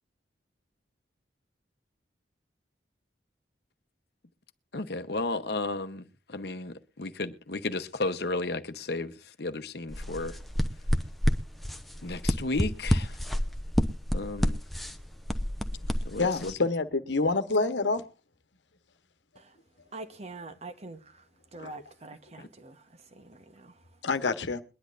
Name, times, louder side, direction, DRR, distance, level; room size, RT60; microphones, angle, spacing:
voice 1, 4.7-6.0 6.3-10.4 12.0-13.2 14.1-14.6 16.0-16.5, left 2 dB, 60° left, 0.9 m, -33 dB
sound 1, 9.9-16.5, equal, ahead, 0.7 m, -29 dB
voice 2, 16.2-18.0 21.6-21.7 24.0-24.6, left 3 dB, 80° left, 1.1 m, -27 dB
voice 3, 19.9-24.0, right 3 dB, 35° right, 1.1 m, -45 dB
22.5 x 10.5 x 2.5 m
head